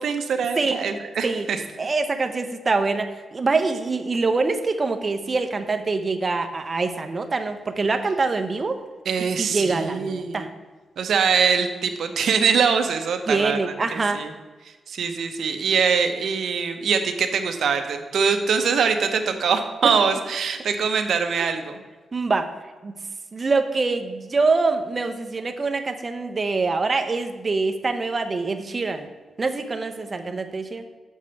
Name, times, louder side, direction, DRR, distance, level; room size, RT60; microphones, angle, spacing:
voice 1, 0.0-1.6 9.1-10.4 11.0-14.3 14.9-21.8, right 6 dB, 65° right, 6 dB, 0.7 m, -23 dB
voice 2, 1.8-8.8 9.4-10.5 13.3-14.2 22.1-22.5 22.8-23.0 23.3-29.1 29.4-30.8, right 3 dB, 25° right, 7 dB, 0.6 m, -24 dB
6.3 x 5.1 x 6.8 m, 1.3 s
wide cardioid pair, 175°, 0 cm